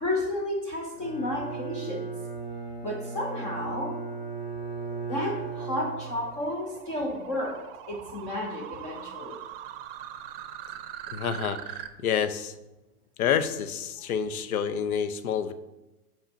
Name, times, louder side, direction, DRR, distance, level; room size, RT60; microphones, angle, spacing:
voice 1, 0.0-2.1 2.8-4.0 5.1-7.6 7.9-9.4, left 1 dB, 15° left, 0 dB, 0.4 m, -32 dB
Bowed string instrument, 1.0-6.4, right 4 dB, 50° left, 2.2 m, -36 dB
sound 1, 3.9-11.9, right 11 dB, 40° right, 0.6 m, -43 dB
voice 2, 11.1-12.5 13.2-15.5, left 8 dB, 70° left, 12 dB, 0.7 m, -28 dB
5.5 x 4.5 x 5.0 m, 1.0 s
hypercardioid pair, 115°, 46 cm